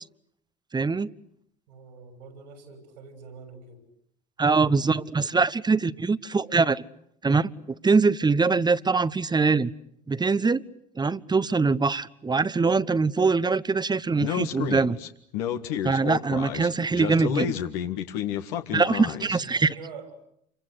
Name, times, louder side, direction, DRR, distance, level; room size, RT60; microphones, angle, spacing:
voice 1, 0.7-1.1 4.4-6.8 7.2-7.5 7.8-9.7 10.1-10.6 11.0-15.0 15.8-17.5 18.7-19.7, right 4 dB, 20° right, 17 dB, 1.1 m, -23 dB
voice 2, 1.7-3.8 19.0-20.1, right 5 dB, 80° right, 8 dB, 6.6 m, -46 dB
Speech, 14.2-19.4, left 10 dB, 70° left, 1.9 m, -30 dB
29.0 x 25.0 x 8.2 m, 0.71 s
hypercardioid pair, 60°, 21 cm